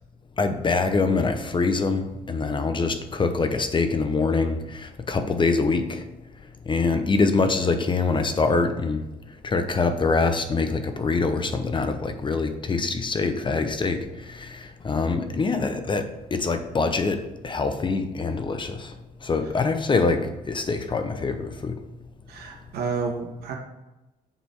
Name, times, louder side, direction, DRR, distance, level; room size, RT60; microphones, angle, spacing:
voice 1, 0.4-6.0 6.7-9.0 9.4-18.9 19.2-21.8, left 4 dB, 30° left, 8 dB, 0.8 m, -24 dB
voice 2, 22.3-23.5, right 4 dB, 75° right, 1 dB, 1.8 m, -30 dB
7.3 x 4.3 x 5.5 m, 1.0 s
cardioid pair, 85°, 17 cm